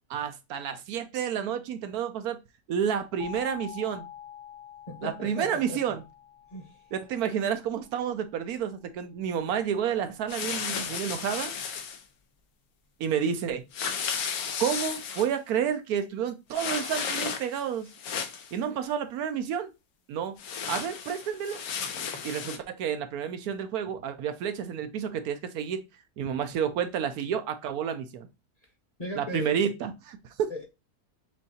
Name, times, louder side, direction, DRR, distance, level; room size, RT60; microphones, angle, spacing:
voice 1, 0.1-2.4 2.7-4.1 5.0-6.0 6.9-11.5 13.0-13.6 14.6-17.9 18.5-19.7 20.1-20.3 20.7-21.6 22.2-25.8 26.2-28.3 29.2-30.5, right 8 dB, 75° right, 1.1 m, -30 dB
sound 1, 3.2-7.9, left 10 dB, 45° left, 0.8 m, -46 dB
voice 2, 4.9-5.8 6.5-6.7 29.0-29.5 30.5-30.6, equal, 25° left, 1.1 m, -36 dB
sound 2, 10.3-12.0 13.7-15.3 16.5-17.6 17.9-18.5 20.4-22.6, left 6 dB, 70° left, 1.2 m, -33 dB
6.3 x 2.6 x 2.7 m
omnidirectional pair, 1.7 m